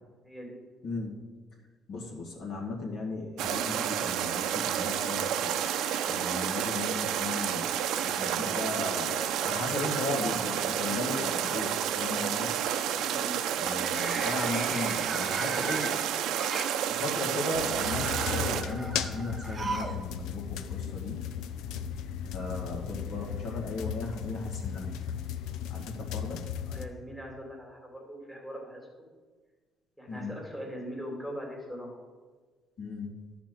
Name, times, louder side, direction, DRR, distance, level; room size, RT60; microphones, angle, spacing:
voice 1, 0.2-0.6 12.9-13.4 26.6-29.1 30.0-32.0, equal, ahead, 0 dB, 2.3 m, -41 dB
voice 2, 1.9-5.6 6.1-7.7 8.0-12.5 13.6-16.0 17.0-21.2 22.3-24.9 25.7-26.5 30.1-30.3 32.8-33.1, left 2 dB, 55° left, -1 dB, 2.0 m, -36 dB
sound 1, 3.4-18.6, right 9 dB, 75° right, 0.6 m, -30 dB
sound 2, 11.5-11.6 13.6-16.8 17.6-20.0 20.3-20.4 21.5-21.6, right 3 dB, 20° right, 1.0 m, -38 dB
sound 3, 17.5-26.9, left 8 dB, 85° left, 0.6 m, -36 dB
11.0 x 4.4 x 7.6 m, 1.4 s
cardioid pair, 130°, 0 cm